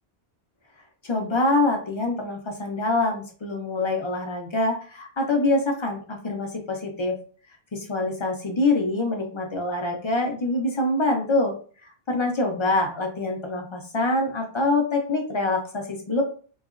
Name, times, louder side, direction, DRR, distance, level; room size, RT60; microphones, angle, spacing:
voice 1, 1.0-7.2 7.7-11.5 12.1-16.2, left 2 dB, 40° left, 3 dB, 0.4 m, -25 dB
2.8 x 2.3 x 2.4 m, 0.41 s
omnidirectional pair, 1.0 m